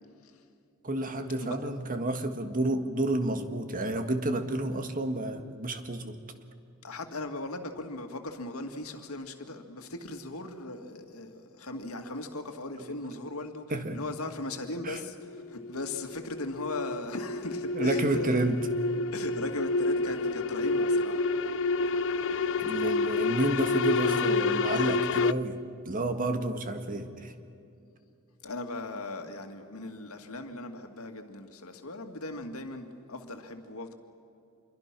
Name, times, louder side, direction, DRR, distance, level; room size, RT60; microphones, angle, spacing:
voice 1, 0.8-6.2 12.8-13.0 13.7-14.0 14.8-15.0 17.7-18.7 22.4-25.6 25.8-27.3, right 1 dB, 40° right, 7 dB, 1.7 m, -30 dB
voice 2, 6.8-13.7 13.9-18.4 19.1-21.2 28.4-33.9, left 2 dB, 85° left, 5 dB, 2.1 m, -38 dB
sound 1, 14.8-25.3, left 3 dB, 60° left, 0.6 m, -29 dB
27.0 x 23.0 x 6.1 m, 2.6 s
head